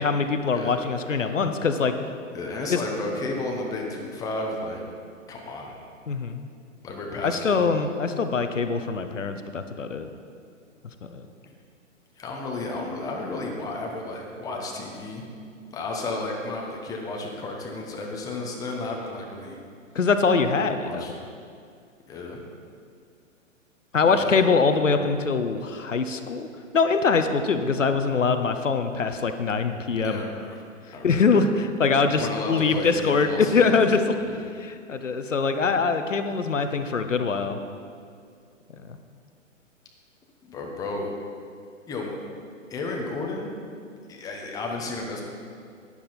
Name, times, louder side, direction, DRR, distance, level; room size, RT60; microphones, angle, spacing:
voice 1, 0.0-1.9 2.7-2.8 6.1-6.4 7.2-10.1 11.1-11.3 19.9-21.1 23.9-26.5 26.7-30.2 31.0-34.2 34.6-37.6, left 4 dB, 70° left, 8 dB, 0.9 m, -23 dB
voice 2, 2.3-4.8 5.3-5.7 6.8-7.8 12.2-15.2 15.7-19.6 20.8-21.1 22.1-22.4 24.0-24.4 29.7-30.6 30.9-31.4 32.2-33.7 34.2-34.4 40.4-41.2 41.9-42.1 42.7-43.5 44.1-45.2, left 2 dB, 10° left, 0 dB, 1.0 m, -33 dB
11.5 x 10.0 x 4.2 m, 2.3 s
figure-of-eight pair, 120°, 39 cm